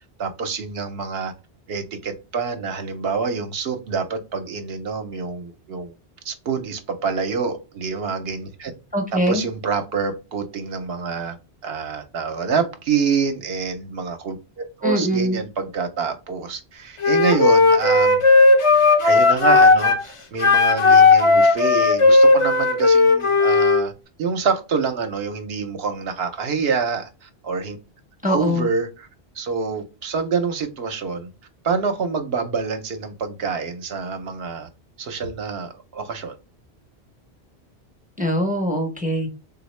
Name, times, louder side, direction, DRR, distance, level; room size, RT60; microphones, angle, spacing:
voice 1, 0.2-1.3 1.7-5.9 6.2-8.7 9.1-11.4 11.6-18.2 19.0-23.9 24.2-27.8 28.3-29.1 29.4-31.3 31.6-34.7 35.0-36.3, right 5 dB, 70° right, 0.8 m, -26 dB
voice 2, 8.9-9.4 14.8-15.4 28.2-28.7 38.2-39.3, equal, 10° right, 0.5 m, -22 dB
Wind instrument woodwind instrument, 17.0-20.0 20.4-23.8, left 3 dB, 40° left, 0.5 m, -15 dB
3.5 x 2.3 x 3.1 m
omnidirectional pair, 1.1 m